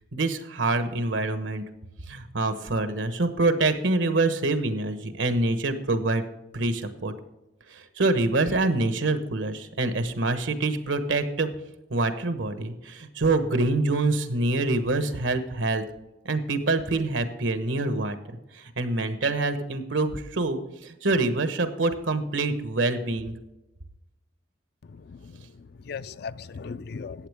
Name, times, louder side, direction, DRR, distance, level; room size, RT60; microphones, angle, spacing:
voice 1, 0.1-1.6 2.1-6.2 6.5-7.1 7.7-11.5 11.9-15.8 16.2-18.2 18.5-23.4, right 2 dB, 85° right, 9 dB, 1.2 m, -26 dB
voice 2, 24.9-27.3, left 5 dB, 55° left, 15 dB, 0.4 m, -38 dB
14.5 x 8.9 x 3.5 m, 0.97 s
head